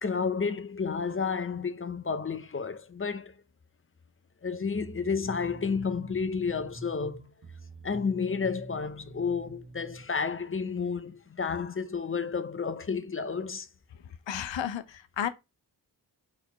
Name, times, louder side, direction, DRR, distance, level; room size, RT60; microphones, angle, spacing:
voice 1, 0.0-3.3 4.4-7.2 7.8-13.7, left 5 dB, 30° left, 0.7 m, -31 dB
sound 1, 4.7-10.1, right 2 dB, 40° right, 1.6 m, -46 dB
voice 2, 14.0-15.3, left 9 dB, 80° left, 0.7 m, -33 dB
4.3 x 3.5 x 2.9 m
cardioid pair, 70°, 44 cm